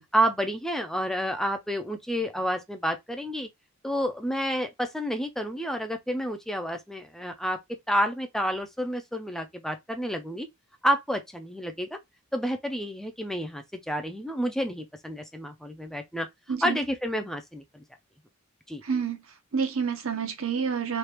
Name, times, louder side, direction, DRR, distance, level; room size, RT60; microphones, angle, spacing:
voice 1, 0.1-3.5 3.8-7.6 7.9-10.5 10.8-12.0 12.3-16.3 16.6-17.8 18.7-18.8, equal, ahead, 0.3 m, -29 dB
voice 2, 16.5-16.8 18.8-21.0, right 6 dB, 75° right, 0.8 m, -29 dB
3.2 x 2.3 x 2.9 m
head